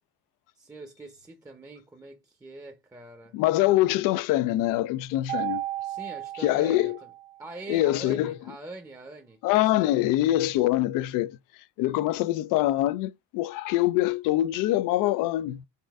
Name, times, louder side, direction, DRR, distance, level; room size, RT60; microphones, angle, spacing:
voice 1, 0.6-3.4 5.8-6.9 7.4-9.4 9.7-9.8, right 1 dB, 10° right, 0.7 m, -43 dB
voice 2, 3.3-5.6 6.4-7.0 7.7-8.4 9.4-11.4 11.8-15.7, left 15 dB, 75° left, 0.5 m, -24 dB
Mallet percussion, 5.3-7.5, right 14 dB, 65° right, 0.8 m, -34 dB
4.1 x 2.5 x 3.5 m
cardioid pair, 110°, 33 cm